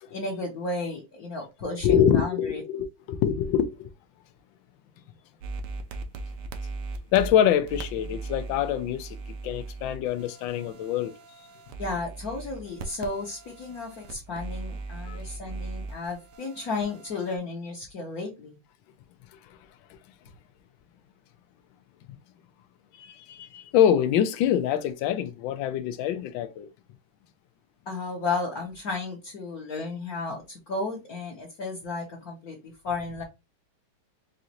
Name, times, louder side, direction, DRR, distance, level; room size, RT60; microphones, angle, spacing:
voice 1, 0.1-2.6 11.8-18.6 27.9-33.2, left 3 dB, 55° left, 1.3 m, -33 dB
voice 2, 1.8-3.9 7.1-9.2 9.4-11.5 15.1-15.2 19.4-19.6 19.9-20.0 23.0-26.7, left 9 dB, 75° left, 1.3 m, -25 dB
sound 1, 5.4-17.4, right 3 dB, 65° right, 1.1 m, -39 dB
5.1 x 2.5 x 2.8 m
omnidirectional pair, 2.2 m